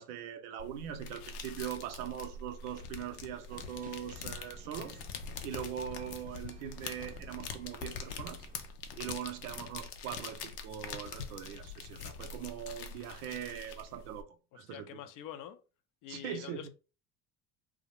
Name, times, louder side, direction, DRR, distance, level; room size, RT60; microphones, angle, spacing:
voice 1, 0.0-5.0 5.4-8.5 8.9-15.0 16.1-16.7, right 9 dB, 75° right, 0.6 m, -41 dB
sound 1, 0.6-14.2, left 5 dB, 90° left, 0.6 m, -44 dB
sound 2, 3.5-8.7, right 4 dB, 20° right, 0.5 m, -56 dB
voice 2, 14.7-15.6 16.0-16.7, left 11 dB, 45° left, 0.4 m, -45 dB
2.4 x 2.1 x 2.9 m
hypercardioid pair, 75°, 45 cm